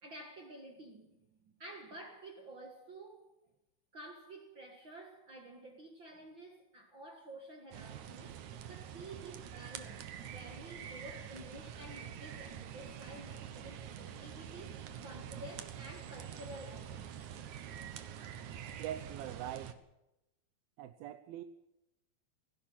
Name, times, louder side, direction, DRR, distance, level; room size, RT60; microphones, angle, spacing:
voice 1, 0.0-3.3 3.9-8.4 8.7-17.5, right 1 dB, 40° right, 1.9 m, -51 dB
sound 1, 7.7-19.7, right 9 dB, 65° right, 2.4 m, -46 dB
voice 2, 18.8-19.7 20.8-21.4, right 11 dB, 90° right, 2.7 m, -42 dB
18.0 x 16.5 x 9.0 m
omnidirectional pair, 4.2 m